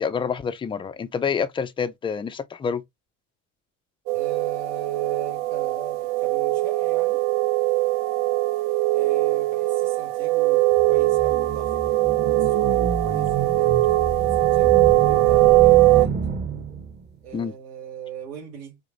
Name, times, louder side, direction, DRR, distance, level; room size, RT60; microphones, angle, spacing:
voice 1, 0.0-2.8 17.3-17.5, left 6 dB, 15° left, 0.3 m, -27 dB
sound 1, 4.1-16.1, right 18 dB, 55° right, 0.5 m, -21 dB
voice 2, 4.1-7.2 8.9-11.8 12.3-13.8 14.3-16.2 17.2-18.8, right 6 dB, 80° right, 2.2 m, -41 dB
sound 2, 10.8-17.1, right 5 dB, 25° right, 0.9 m, -29 dB
5.0 x 2.6 x 2.5 m
supercardioid pair, 105°, 41 cm